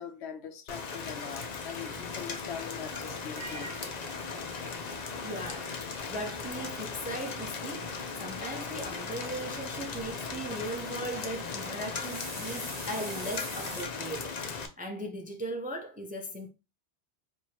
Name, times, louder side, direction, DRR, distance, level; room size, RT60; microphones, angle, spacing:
voice 1, 0.0-4.0, left 7 dB, 80° left, 0.9 m, -42 dB
Rain, 0.7-14.7, left 5 dB, 50° left, 0.6 m, -38 dB
sound 1, 2.3-13.9, right 1 dB, 35° right, 1.6 m, -46 dB
voice 2, 5.2-5.7 6.1-14.4 14.8-16.5, right 1 dB, 15° right, 0.4 m, -38 dB
4.5 x 2.7 x 2.8 m
omnidirectional pair, 1.1 m